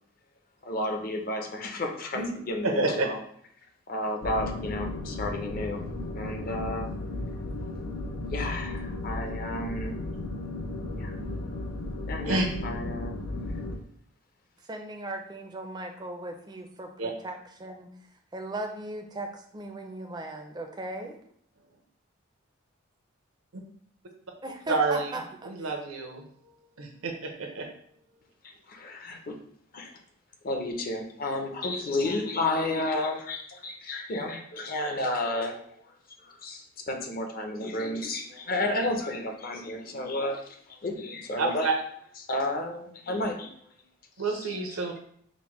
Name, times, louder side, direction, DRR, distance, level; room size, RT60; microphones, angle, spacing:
voice 1, 0.6-3.2 3.9-5.8 6.1-6.9 8.3-9.9 11.0-11.1 12.1-13.1 28.7-29.4 29.7-29.9 30.4-35.6 36.2-41.7 42.3-43.5 44.2-44.6, left 2 dB, 45° left, 3 dB, 0.5 m, -32 dB
voice 2, 2.6-3.1 12.3-12.5 17.0-17.1 24.7-25.1 25.4-26.2 26.8-27.7 41.4-41.7 44.2-45.0, right 3 dB, 85° right, 2 dB, 0.7 m, -28 dB
sound 1, 4.2-13.8, left 2 dB, 90° left, 0.6 m, -35 dB
voice 3, 14.7-16.9 17.2-17.9 18.3-21.2 24.4-25.7, right 2 dB, 20° right, 4 dB, 0.4 m, -37 dB
5.1 x 2.1 x 3.0 m, 0.64 s
head